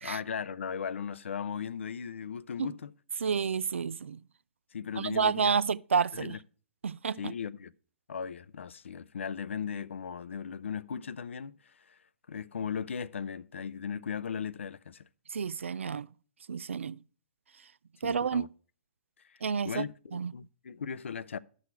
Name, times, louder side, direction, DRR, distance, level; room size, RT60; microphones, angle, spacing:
voice 1, 0.0-2.9 4.7-5.6 6.1-6.4 7.2-7.7 8.1-12.0 12.3-15.1 18.0-18.5 19.3-19.4 19.6-21.4, left 7 dB, 75° left, 0.5 m, -37 dB
voice 2, 3.2-4.2 5.0-6.4 6.8-7.2 15.3-16.1 16.5-17.0 18.0-18.5 19.4-19.9 20.1-20.3, right 6 dB, 85° right, 0.3 m, -30 dB
11.5 x 6.3 x 4.4 m
hypercardioid pair, 120°, 7 cm